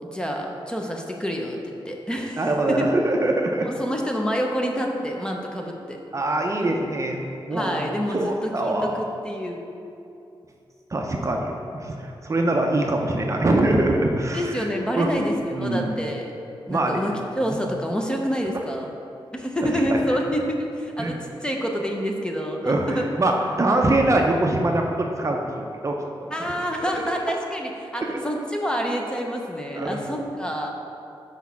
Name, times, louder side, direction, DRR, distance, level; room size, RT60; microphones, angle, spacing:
voice 1, 0.0-2.9 3.6-6.0 7.5-9.6 14.3-16.3 16.7-18.9 19.3-22.6 22.9-23.0 26.3-30.7, equal, 10° left, 1 dB, 0.7 m, -27 dB
voice 2, 2.4-3.7 6.1-7.2 7.5-7.8 8.1-9.0 10.9-14.7 14.9-15.1 15.5-15.9 16.7-17.0 19.9-20.0 21.0-21.2 22.6-25.9 26.2-26.3 28.0-28.2 29.7-30.0, right 2 dB, 35° right, 1 dB, 0.5 m, -23 dB
6.2 x 4.7 x 5.8 m, 2.7 s
wide cardioid pair, 130°, 9 cm